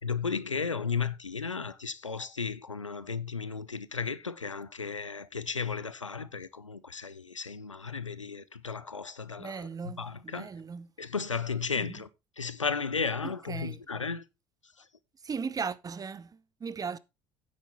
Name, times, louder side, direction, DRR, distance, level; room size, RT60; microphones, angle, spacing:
voice 1, 0.0-10.5 11.0-12.1 12.4-14.2 14.8-14.9, left 5 dB, 90° left, 0.6 m, -34 dB
voice 2, 9.4-10.9 11.8-12.0 13.2-13.8 15.2-17.0, right 5 dB, 25° right, 0.8 m, -37 dB
9.4 x 8.7 x 3.9 m
figure-of-eight pair, 65°, 15 cm